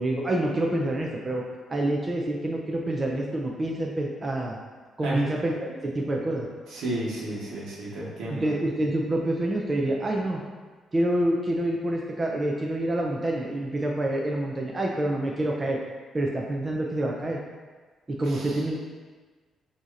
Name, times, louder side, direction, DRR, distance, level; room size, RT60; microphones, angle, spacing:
voice 1, 0.0-1.4 1.7-4.6 5.0-6.5 8.3-10.4 10.9-15.8 16.1-17.4 18.2-18.8, right 1 dB, 30° right, -1 dB, 0.5 m, -27 dB
voice 2, 6.7-8.5 18.3-18.5, right 1 dB, 80° right, -5 dB, 1.1 m, -32 dB
6.0 x 2.8 x 2.5 m, 1.4 s
cardioid pair, 90°, 0 cm